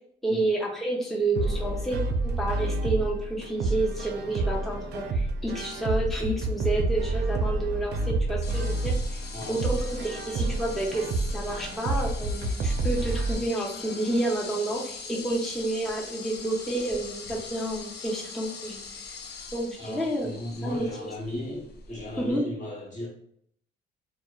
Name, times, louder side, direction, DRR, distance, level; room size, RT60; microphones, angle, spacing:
voice 1, 0.2-9.2 9.5-11.1 11.3-18.8 19.5-20.4 20.6-20.9 22.2-22.4, right 2 dB, ahead, -4 dB, 0.5 m, -30 dB
sound 1, 1.4-13.4, right 2 dB, 55° right, 0.4 m, -29 dB
sound 2, 8.4-22.3, left 4 dB, 55° left, 0.5 m, -42 dB
voice 2, 19.8-23.1, left 1 dB, 40° left, -2 dB, 1.0 m, -36 dB
2.8 x 2.0 x 2.2 m, 0.66 s
cardioid pair, 90°, 20 cm